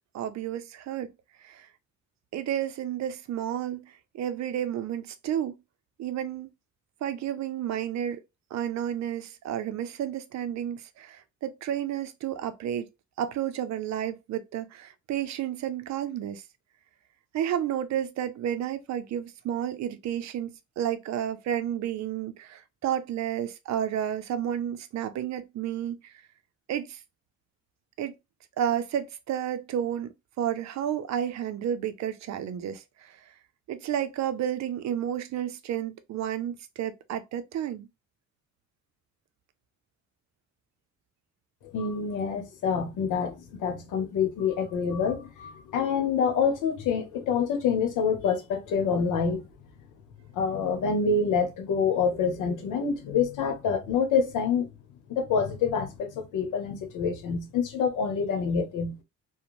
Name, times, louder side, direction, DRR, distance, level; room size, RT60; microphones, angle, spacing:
voice 1, 0.1-1.1 1.4-1.7 2.3-5.6 6.0-6.5 7.0-8.2 8.5-12.9 13.2-16.4 17.3-20.5 20.8-26.1 26.7-27.0 28.0-28.1 28.6-33.3 33.7-37.9, right 10 dB, 65° right, 0.5 m, -31 dB
voice 2, 41.7-49.5 50.3-54.7 55.1-59.0, left 6 dB, 85° left, 0.8 m, -27 dB
2.5 x 2.1 x 3.0 m
cardioid pair, 90°, 30 cm